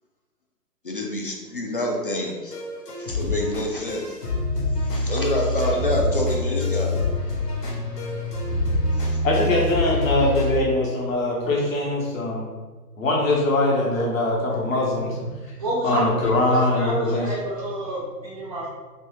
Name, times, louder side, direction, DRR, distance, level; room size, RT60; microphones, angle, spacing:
voice 1, 0.8-2.6 3.0-4.1 4.8-7.0 9.0-9.1, left 1 dB, 35° left, 0 dB, 0.4 m, -27 dB
sound 1, 2.5-10.6, left 1 dB, 75° left, 1.3 m, -25 dB
voice 2, 9.2-12.5 13.0-15.2 15.8-17.3, left 2 dB, 55° left, -3 dB, 1.2 m, -22 dB
voice 3, 14.5-15.2 15.6-18.7, right 1 dB, 25° right, -10 dB, 0.5 m, -29 dB
3.2 x 3.1 x 3.1 m, 1.3 s
figure-of-eight pair, 130°, 48 cm